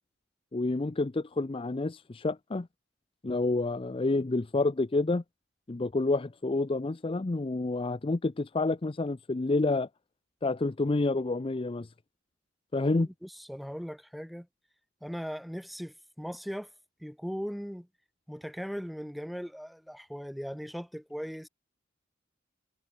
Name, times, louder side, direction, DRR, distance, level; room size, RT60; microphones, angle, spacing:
voice 1, 0.5-2.7 3.2-5.2 5.7-9.9 10.4-11.9 12.7-13.1, left 2 dB, 25° left, 0.5 m, -29 dB
voice 2, 12.8-14.5 15.0-16.7 17.0-17.9 18.3-21.5, equal, ahead, 7.6 m, -39 dB
head